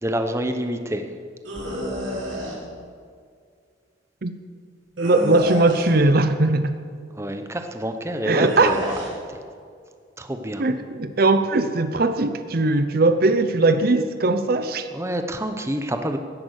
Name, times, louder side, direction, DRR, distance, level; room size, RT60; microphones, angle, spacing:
voice 1, 0.0-1.0 7.2-8.9 9.3-9.4 10.2-10.6 14.9-16.2, right 1 dB, 15° right, 6 dB, 0.9 m, -27 dB
sound 1, 1.4-2.5 5.0-6.0 8.4-9.1, equal, 90° right, 4.2 m, -30 dB
voice 2, 5.0-6.7 8.2-8.7 10.6-14.9, right 2 dB, 50° right, 9 dB, 0.7 m, -19 dB
16.5 x 10.5 x 6.5 m, 2.2 s
head